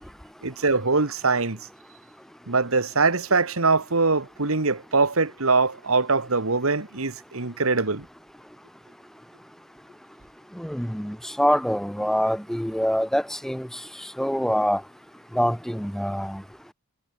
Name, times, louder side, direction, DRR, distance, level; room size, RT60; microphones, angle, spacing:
voice 1, 0.4-1.6 2.5-8.0, right 3 dB, 70° right, 1.7 m, -23 dB
voice 2, 10.6-13.8 14.2-14.8 15.3-16.4, equal, ahead, 6.0 m, -25 dB
head